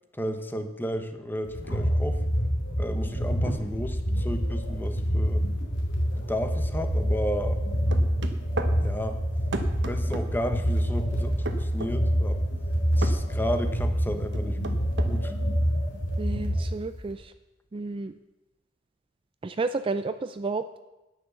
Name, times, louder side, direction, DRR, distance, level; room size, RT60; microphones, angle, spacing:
voice 1, 0.1-2.2 2.8-5.5 6.1-7.6 8.8-9.2 9.9-12.4 13.0-14.6 15.0-15.3, equal, 10° left, 7 dB, 1.0 m, -32 dB
sound 1, 1.5-17.1, equal, 80° left, 2.8 m, -27 dB
sound 2, 7.9-8.7 9.5-10.3 11.5-11.9 13.0-13.2 14.3-15.1, right 2 dB, 65° right, 1.0 m, -33 dB
voice 2, 16.2-17.3 17.7-18.1 19.4-20.8, right 3 dB, 30° right, 10 dB, 0.4 m, -31 dB
10.0 x 9.5 x 7.0 m, 1.0 s
head